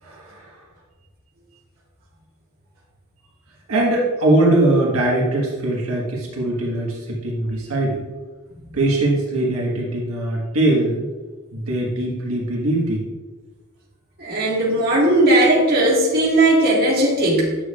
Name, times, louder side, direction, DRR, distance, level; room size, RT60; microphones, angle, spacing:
voice 1, 0.0-0.6 3.7-8.0 8.7-11.1 11.5-13.1, right 1 dB, 80° right, -3 dB, 1.5 m, -21 dB
voice 2, 14.2-17.6, right 1 dB, 45° right, -4 dB, 1.8 m, -17 dB
9.3 x 6.6 x 2.4 m, 1.3 s
head